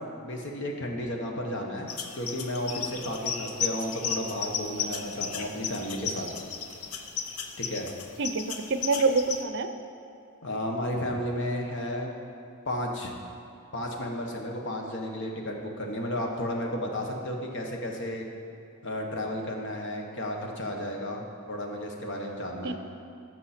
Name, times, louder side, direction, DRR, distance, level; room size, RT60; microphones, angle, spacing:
voice 1, 0.0-6.3 7.6-7.9 10.4-12.1 12.7-13.1 13.7-18.2 18.8-22.8, left 1 dB, 55° left, 1 dB, 1.3 m, -33 dB
sound 1, 1.9-9.4, left 6 dB, 80° left, 0.8 m, -35 dB
voice 2, 8.2-9.7 22.6-22.8, right 3 dB, 55° right, 9 dB, 0.5 m, -26 dB
13.5 x 6.4 x 4.4 m, 2.7 s
head